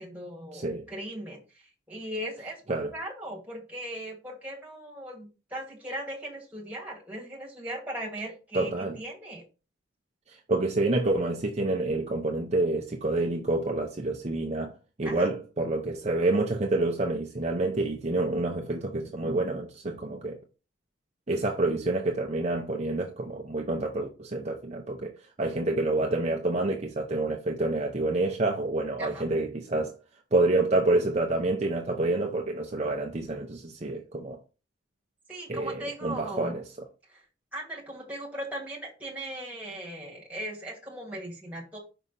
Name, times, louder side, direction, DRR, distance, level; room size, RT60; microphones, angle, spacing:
voice 1, 0.0-9.4 15.0-15.3 29.0-29.3 35.3-36.6 37.1-37.2 37.5-41.8, right 1 dB, 5° right, 2.0 m, -38 dB
voice 2, 0.5-0.9 2.7-2.9 8.5-9.0 10.3-14.7 15.0-20.4 21.3-30.0 30.3-34.4 35.5-36.6, right 2 dB, 35° right, 0.6 m, -28 dB
5.5 x 5.0 x 4.0 m
head